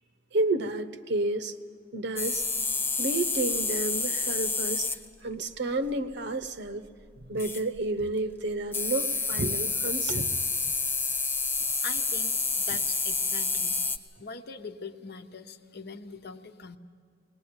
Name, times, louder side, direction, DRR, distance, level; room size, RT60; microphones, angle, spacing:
voice 1, 0.3-1.6 1.9-2.4 3.0-4.9 5.2-6.8 7.2-10.4, right 2 dB, 60° right, 10 dB, 0.9 m, -30 dB
sound 1, 2.2-5.0 7.4-7.8 8.7-14.0, left 4 dB, 10° left, 0.8 m, -29 dB
voice 2, 11.8-13.8 14.2-16.8, left 4 dB, 55° left, 8 dB, 1.0 m, -42 dB
21.0 x 20.0 x 8.9 m, 2.3 s
head